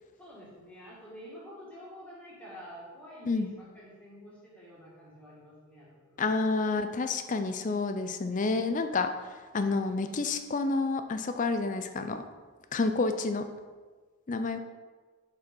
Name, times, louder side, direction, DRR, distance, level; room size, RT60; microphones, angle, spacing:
voice 1, 0.2-6.2 14.4-14.6, equal, 5° left, -7 dB, 2.1 m, -48 dB
voice 2, 6.2-9.1 9.5-12.2 12.7-13.5 14.3-14.6, left 3 dB, 35° left, 8 dB, 0.4 m, -29 dB
6.3 x 5.2 x 5.4 m, 1.4 s
head